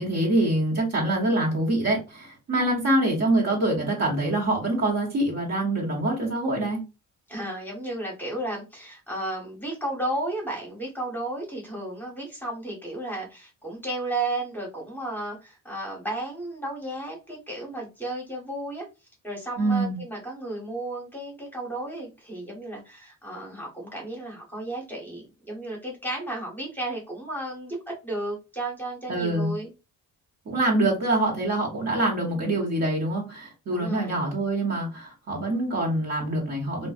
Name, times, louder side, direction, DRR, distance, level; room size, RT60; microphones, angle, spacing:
voice 1, 0.0-6.8 19.6-20.0 29.1-29.5 30.4-36.9, right 1 dB, 50° right, 1.4 m, -25 dB
voice 2, 7.3-18.8 19.2-29.7 33.7-34.2, right 1 dB, 5° left, 1.1 m, -33 dB
2.5 x 2.4 x 2.3 m
cardioid pair, 100°, 33 cm